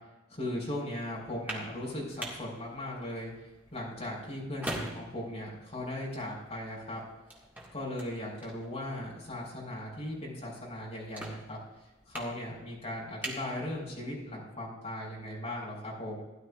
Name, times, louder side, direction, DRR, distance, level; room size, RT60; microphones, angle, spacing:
voice 1, 0.3-3.3 3.7-7.0 7.7-11.6 12.1-16.2, left 1 dB, 35° left, -3 dB, 4.6 m, -38 dB
sound 1, 1.2-14.3, right 1 dB, 10° right, 1.9 m, -45 dB
16.0 x 11.5 x 2.4 m, 1.0 s
head